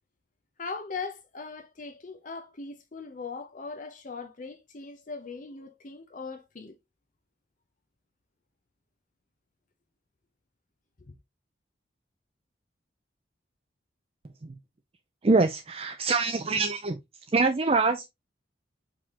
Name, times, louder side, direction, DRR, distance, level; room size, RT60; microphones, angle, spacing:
voice 1, 0.6-6.7 11.1-11.2, left 4 dB, 40° left, 0.6 m, -39 dB
voice 2, 15.2-17.0 17.3-18.1, right 3 dB, 30° right, 0.4 m, -24 dB
4.9 x 3.7 x 2.9 m
head